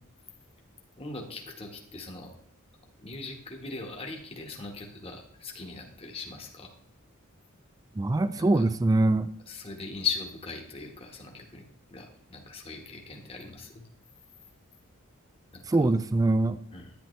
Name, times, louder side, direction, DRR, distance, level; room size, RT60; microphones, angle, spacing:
voice 1, 1.0-2.3 3.0-6.7 8.4-8.6 9.5-13.8 15.5-15.6 16.7-16.9, left 5 dB, 25° left, 1 dB, 1.4 m, -39 dB
voice 2, 7.9-9.3 15.7-16.6, right 2 dB, 15° right, 13 dB, 0.3 m, -23 dB
10.5 x 10.0 x 3.2 m, 0.71 s
head